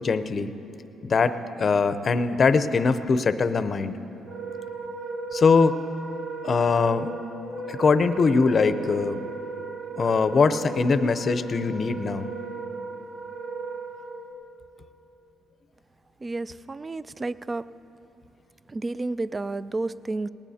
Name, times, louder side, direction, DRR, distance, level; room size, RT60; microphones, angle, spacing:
voice 1, 0.0-0.5 1.0-4.0 5.3-5.8 6.4-7.1 7.7-9.2 10.0-12.3, left 4 dB, 45° left, 12 dB, 0.6 m, -22 dB
Wind instrument woodwind instrument, 4.2-14.3, right 4 dB, 60° right, 2.2 m, -36 dB
voice 2, 16.2-17.7 18.7-20.3, right 2 dB, 25° right, 16 dB, 0.3 m, -31 dB
19.0 x 19.0 x 2.8 m, 3.0 s
cardioid pair, 90°, 0 cm